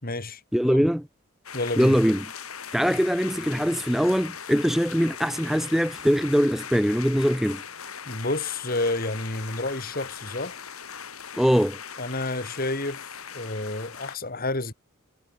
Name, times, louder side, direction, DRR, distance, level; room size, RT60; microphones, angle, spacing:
voice 1, 0.0-0.8 1.5-2.0 8.1-10.6 12.0-13.1 13.3-14.7, left 2 dB, 40° left, 3.8 m, -30 dB
voice 2, 0.5-1.1 1.8-2.3 2.7-7.6 11.4-11.8, equal, ahead, 0.8 m, -22 dB
sound 1, 1.4-14.2, left 7 dB, 75° left, 4.6 m, -40 dB
head